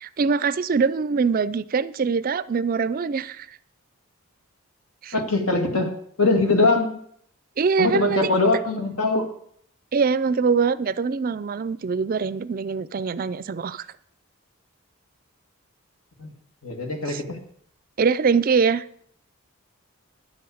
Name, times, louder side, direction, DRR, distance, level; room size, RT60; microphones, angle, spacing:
voice 1, 0.0-3.5 5.0-5.2 7.6-8.2 9.9-13.9 17.1-17.2 18.0-19.0, right 5 dB, 40° right, 16 dB, 0.4 m, -23 dB
voice 2, 5.1-5.9 6.2-7.0 7.8-9.3 16.2-16.3 16.6-17.4, left 3 dB, 80° left, 4 dB, 2.1 m, -22 dB
10.5 x 7.7 x 7.0 m, 0.67 s
head